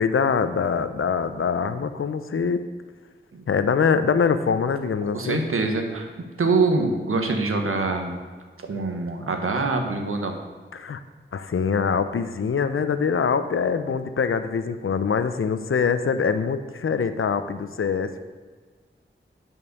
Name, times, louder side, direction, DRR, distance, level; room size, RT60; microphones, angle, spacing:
voice 1, 0.0-2.6 3.5-5.4 10.7-11.0 11.3-18.2, left 6 dB, 75° left, 11 dB, 0.7 m, -24 dB
voice 2, 5.0-6.1 6.4-8.2 8.6-10.3, right 3 dB, 85° right, 4 dB, 1.3 m, -24 dB
9.4 x 5.4 x 6.7 m, 1.5 s
wide cardioid pair, 70°, 21 cm